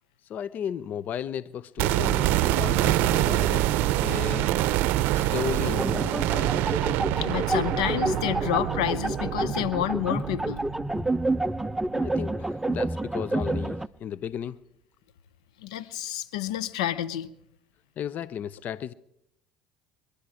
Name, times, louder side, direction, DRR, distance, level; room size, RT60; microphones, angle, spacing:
voice 1, 0.3-4.5 5.1-6.8 11.9-14.6 18.0-18.9, left 9 dB, 55° left, 0.5 m, -35 dB
sound 1, 1.8-11.8 12.1-12.2, right 14 dB, 75° right, 0.6 m, -26 dB
sound 2, 5.7-13.9, right 2 dB, 5° right, 0.5 m, -29 dB
voice 2, 7.2-10.6 15.6-17.3, left 12 dB, 90° left, 0.7 m, -29 dB
23.0 x 11.5 x 4.9 m
supercardioid pair, 75°, 3 cm